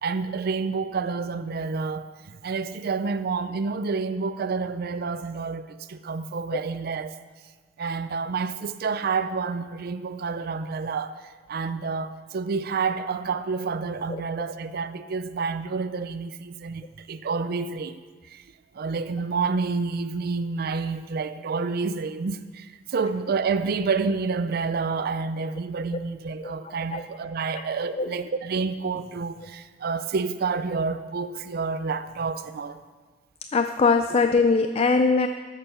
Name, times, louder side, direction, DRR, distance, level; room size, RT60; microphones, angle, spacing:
voice 1, 0.0-7.2 7.8-18.0 18.3-18.4 18.7-32.8, right 4 dB, 55° right, 0.4 m, -29 dB
voice 2, 26.4-27.0 28.0-28.1 33.5-35.3, left 4 dB, 35° left, 0.4 m, -22 dB
13.0 x 6.8 x 5.7 m
head